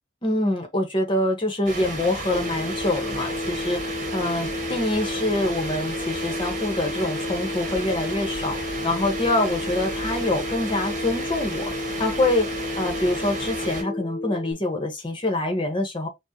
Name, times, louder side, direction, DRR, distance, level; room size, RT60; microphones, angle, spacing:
voice 1, 0.2-8.6 8.8-11.7 12.0-12.5 12.8-16.1, left 1 dB, 30° left, 1.2 m, -25 dB
sound 1, 1.7-13.8, right 2 dB, 45° right, 1.5 m, -33 dB
Telephone, 2.3-14.5, left 2 dB, 70° left, 0.9 m, -32 dB
6.1 x 2.5 x 2.8 m
head